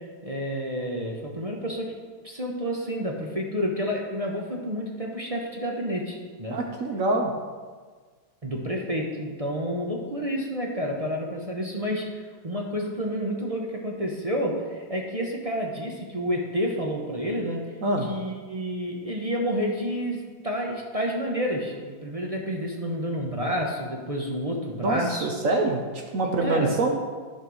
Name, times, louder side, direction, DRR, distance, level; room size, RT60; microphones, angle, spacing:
voice 1, 0.2-1.9 2.2-6.6 8.4-17.6 18.0-20.2 20.4-25.3 26.2-26.7, equal, 30° right, -1 dB, 0.6 m, -29 dB
voice 2, 6.5-7.3 17.8-18.1 24.8-25.8 26.1-27.0, right 2 dB, 60° right, 2 dB, 0.9 m, -25 dB
11.0 x 4.5 x 6.3 m, 1.5 s
omnidirectional pair, 2.1 m